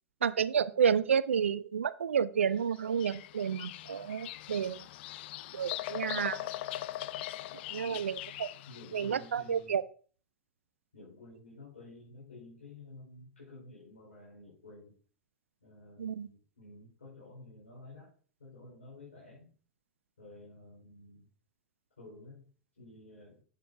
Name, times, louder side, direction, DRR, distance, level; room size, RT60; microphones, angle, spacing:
voice 1, 0.2-4.8 5.5-6.4 7.7-8.5 8.9-9.8 16.0-16.3, right 7 dB, 80° right, 17 dB, 0.4 m, -30 dB
Bird vocalization bird call bird song, 2.7-9.4, left 15 dB, 55° left, 0.4 m, -41 dB
voice 2, 7.8-8.1 8.7-9.8 10.9-15.0 15.6-19.5 20.2-21.3 22.0-22.4 22.8-23.4, left 2 dB, 80° left, -7 dB, 4.3 m, -52 dB
8.2 x 7.5 x 2.6 m, 0.42 s
hypercardioid pair, 100°, 7 cm